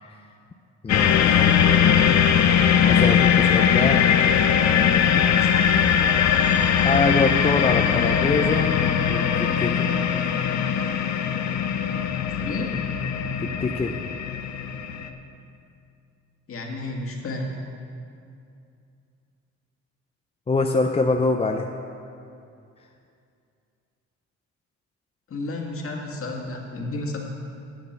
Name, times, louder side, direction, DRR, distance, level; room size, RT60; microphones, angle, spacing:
voice 1, 0.8-1.5 2.8-4.0 6.7-8.7 9.1-9.9 13.4-14.0 20.5-21.7, left 3 dB, 20° left, 4 dB, 0.5 m, -24 dB
sound 1, 0.9-15.1, left 8 dB, 65° left, 0.7 m, -20 dB
voice 2, 5.2-5.7 12.1-12.8 16.5-17.5 25.3-27.2, left 2 dB, 45° left, 0 dB, 1.8 m, -32 dB
10.5 x 6.6 x 6.6 m, 2.5 s
cardioid pair, 90°, 30 cm